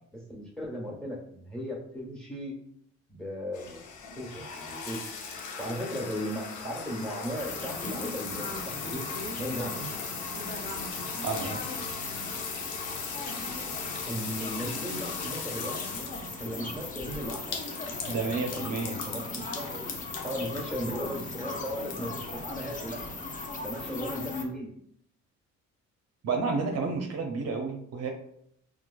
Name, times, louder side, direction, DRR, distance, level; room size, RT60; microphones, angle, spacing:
voice 1, 0.1-2.6 3.1-3.8 4.1-5.0 5.6-9.1 9.4-9.9 14.1-15.8 16.4-17.6 18.2-19.8 20.2-23.1 23.6-24.7, equal, ahead, -3 dB, 1.2 m, -36 dB
sound 1, 3.5-22.4, left 5 dB, 75° left, 0.7 m, -39 dB
sound 2, 7.4-24.5, left 3 dB, 25° left, 0.6 m, -38 dB
voice 2, 11.2-11.6 18.1-19.0 26.2-28.1, right 4 dB, 60° right, 3 dB, 0.5 m, -30 dB
4.3 x 2.3 x 2.3 m, 0.70 s
cardioid pair, 90°, 30 cm